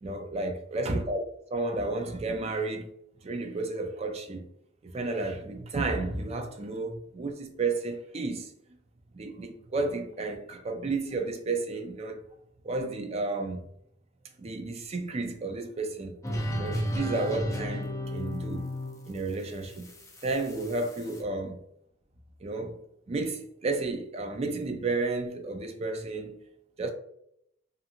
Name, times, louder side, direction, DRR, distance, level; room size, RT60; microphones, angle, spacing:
voice 1, 0.0-1.2 1.5-2.9 3.2-4.5 4.8-8.5 9.1-12.2 12.6-13.6 14.4-16.2 16.5-18.7 19.1-19.9 20.2-21.6 22.4-22.8 23.1-26.4 26.8-26.9, right 3 dB, 35° right, 0.4 m, -32 dB
sound 1, 16.2-21.2, equal, 15° left, 0.5 m, -34 dB
2.6 x 2.4 x 2.8 m
head